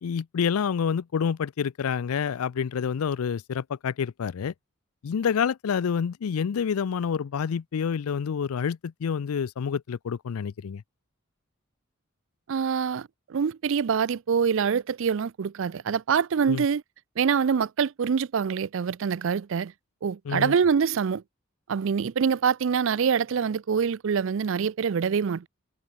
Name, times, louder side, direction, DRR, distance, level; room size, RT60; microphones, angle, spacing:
voice 1, 0.0-4.5 5.0-10.8 16.5-16.7 20.3-20.5, left 7 dB, 85° left, 0.4 m, -28 dB
voice 2, 12.5-16.8 17.2-19.7 20.0-21.2 21.7-25.5, right 6 dB, 65° right, 0.4 m, -25 dB
head